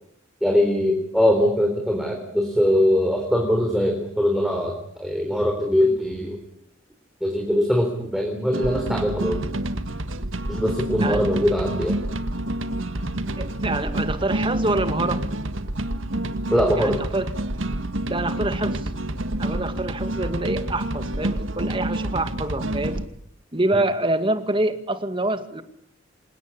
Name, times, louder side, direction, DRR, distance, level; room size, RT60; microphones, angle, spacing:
voice 1, 0.4-6.4 7.2-9.5 10.5-12.0 16.5-17.0 23.7-23.8, equal, ahead, 1 dB, 3.7 m, -22 dB
sound 1, 8.5-23.1, right 1 dB, 75° right, 1.8 m, -28 dB
voice 2, 13.4-15.2 16.7-17.3 18.1-18.9 19.4-23.0 23.5-25.6, right 2 dB, 25° right, 9 dB, 2.1 m, -26 dB
28.0 x 17.5 x 9.9 m, 0.70 s
head